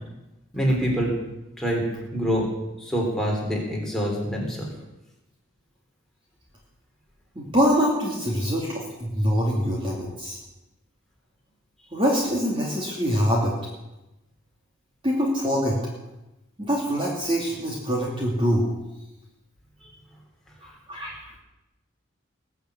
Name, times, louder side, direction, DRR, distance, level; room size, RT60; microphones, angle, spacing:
voice 1, 0.5-1.1 1.6-1.9 2.1-2.5 2.8-4.7, equal, ahead, -2 dB, 3.5 m, -25 dB
voice 2, 7.4-10.4 11.9-13.5 15.0-15.8 16.6-18.7 20.6-21.2, equal, 25° right, -3 dB, 2.5 m, -24 dB
20.5 x 7.1 x 8.1 m, 0.97 s
head